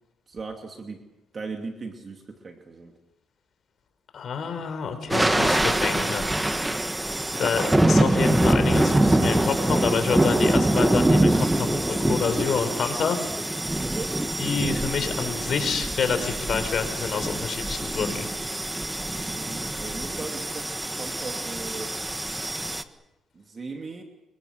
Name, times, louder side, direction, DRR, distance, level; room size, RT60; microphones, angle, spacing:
voice 1, 0.3-1.0 1.3-2.9 13.8-14.2 19.0-22.0 23.3-24.0, right 4 dB, 40° right, 3 dB, 2.8 m, -38 dB
voice 2, 4.1-6.3 7.4-13.4 14.4-18.3, left 6 dB, 55° left, 8 dB, 4.9 m, -28 dB
sound 1, 5.1-22.8, right 1 dB, 10° right, 1.6 m, -24 dB
27.0 x 23.0 x 6.6 m, 0.95 s
cardioid pair, 90°, 0 cm